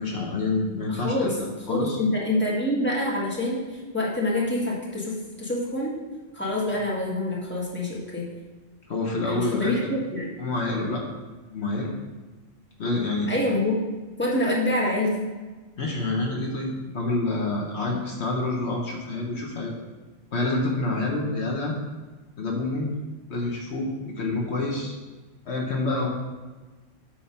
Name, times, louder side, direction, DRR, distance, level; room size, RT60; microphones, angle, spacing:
voice 1, 0.0-1.4 1.7-2.0 8.9-9.8 10.4-11.0 11.5-11.9 12.8-13.3 15.8-19.7 20.3-21.7 22.4-22.9 23.3-24.9 25.5-26.1, left 2 dB, 65° left, -1 dB, 1.3 m, -27 dB
voice 2, 0.9-1.3 1.7-3.7 3.9-5.9 6.3-8.2 9.3-10.3 13.3-13.8 14.2-15.2, left 1 dB, 10° left, -4 dB, 1.5 m, -26 dB
8.7 x 3.6 x 5.5 m, 1.3 s
omnidirectional pair, 1.3 m